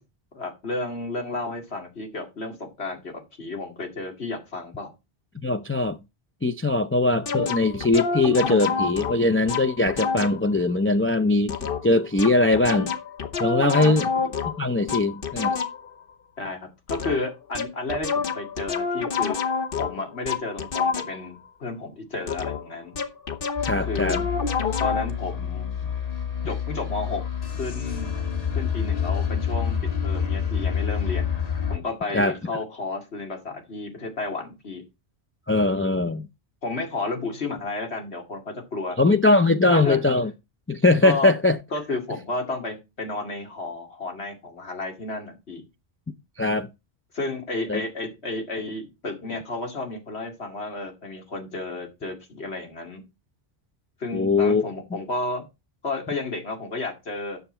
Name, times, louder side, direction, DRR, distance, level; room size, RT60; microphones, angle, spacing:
voice 1, 0.3-4.9 13.7-14.3 16.4-19.4 19.8-22.9 23.7-24.2 24.8-25.9 26.4-28.1 28.5-31.2 31.7-34.8 36.6-39.0 39.7-40.0 41.0-41.3 41.7-45.6 47.1-53.0 54.0-55.5 55.8-57.4, left 3 dB, 90° left, 2.5 m, -32 dB
voice 2, 5.4-6.0 6.4-11.6 11.8-12.9 13.4-14.1 14.5-15.6 23.6-24.2 32.1-32.3 35.5-36.3 39.0-40.3 40.7-41.6 46.4-46.7 47.7-47.8 54.1-54.6, left 2 dB, 20° left, 0.4 m, -21 dB
sound 1, 7.3-10.5 11.5-16.0 16.9-17.3 17.6-21.4 22.3-25.1, left 5 dB, 60° left, 1.2 m, -28 dB
sound 2, 23.6-31.8, left 7 dB, 40° left, 1.3 m, -28 dB
9.4 x 6.9 x 4.3 m
omnidirectional pair, 1.1 m